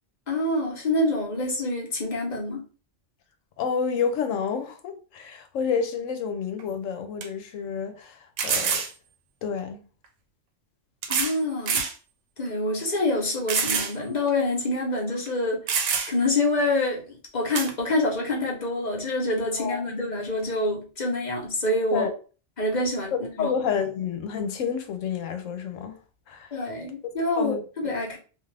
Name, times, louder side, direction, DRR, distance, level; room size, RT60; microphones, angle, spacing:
voice 1, 0.3-2.6 11.1-11.9 12.4-15.6 16.1-22.1 22.6-23.5 26.5-28.2, left 2 dB, 40° left, 0.9 m, -26 dB
voice 2, 3.6-8.8 9.4-9.9 19.6-19.8 21.9-22.1 23.4-26.0 26.3-26.6 27.4-27.6, left 6 dB, 85° left, 1.0 m, -29 dB
sound 1, 6.6-6.7 7.2-7.3 8.4-8.9 10.0-10.1 11.0-11.4 11.7-11.9 12.5-12.6 13.5-13.9 14.3-14.4 15.3-15.4 15.7-16.3 17.5-17.7, right 6 dB, 75° right, 0.9 m, -26 dB
2.5 x 2.4 x 3.2 m
omnidirectional pair, 1.3 m